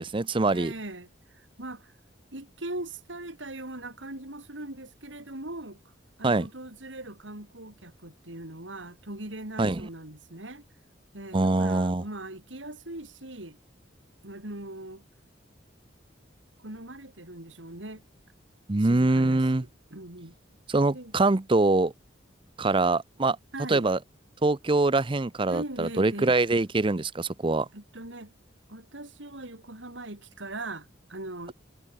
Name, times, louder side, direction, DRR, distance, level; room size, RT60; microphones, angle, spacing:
voice 1, 0.0-0.7 6.2-6.5 9.6-9.8 11.3-12.0 18.7-19.6 20.7-21.9 22.6-23.4 23.7-24.0 24.4-27.7, right 2 dB, 30° right, 0.7 m, -24 dB
voice 2, 0.5-1.9 2.3-5.8 6.2-10.7 11.1-13.6 14.2-15.0 16.6-18.0 18.8-20.3 20.9-21.1 23.5-23.9 25.5-26.4 27.7-28.3 28.7-31.5, right 2 dB, 85° right, 4.7 m, -40 dB
head